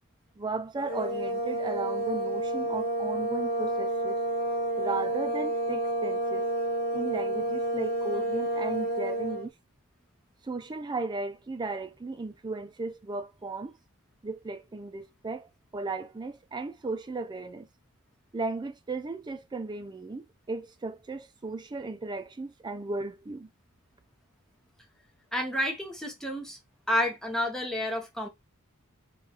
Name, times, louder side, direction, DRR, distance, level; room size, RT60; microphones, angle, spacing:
voice 1, 0.4-4.2 4.8-6.5 6.9-9.5 10.4-13.7 14.2-17.7 18.3-23.5, right 3 dB, 20° right, 0.4 m, -35 dB
sound 1, 0.8-9.5, right 1 dB, 55° left, 1.2 m, -30 dB
voice 2, 25.3-26.6 26.9-28.3, left 1 dB, ahead, 0.8 m, -30 dB
2.9 x 2.3 x 3.8 m
head